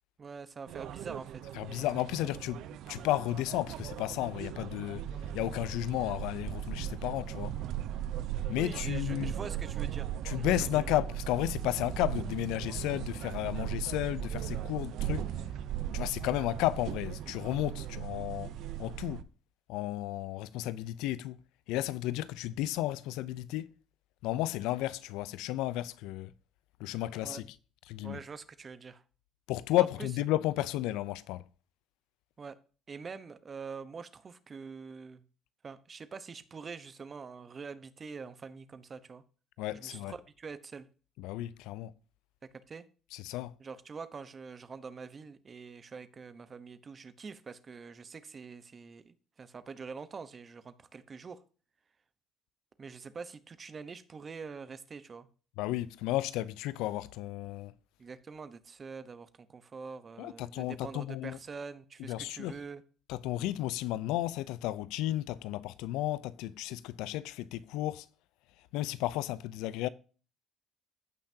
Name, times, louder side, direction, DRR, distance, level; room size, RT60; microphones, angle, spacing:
voice 1, 0.2-1.4 8.6-10.1 10.4-10.5 27.2-27.4 28.0-29.0 29.8-29.9 32.4-32.6 32.9-35.2 35.6-39.2 39.7-40.9 42.7-42.8 43.6-51.4 52.8-55.3 58.0-62.8, right 5 dB, 30° right, 1.0 m, -45 dB
sound 1, 0.7-19.2, right 11 dB, 70° right, 0.6 m, -38 dB
voice 2, 1.5-2.6 2.9-5.1 5.3-7.6 8.5-9.3 10.2-15.3 15.9-19.2 19.7-21.4 21.7-23.7 24.2-26.3 26.8-27.4 27.9-28.2 29.5-31.4 39.6-40.1 41.2-41.9 43.1-43.5 55.6-57.7 60.2-61.4 62.1-62.6 63.1-68.1 68.7-69.9, left 15 dB, 85° left, 0.5 m, -33 dB
15.0 x 5.9 x 2.8 m
cardioid pair, 115°, 0 cm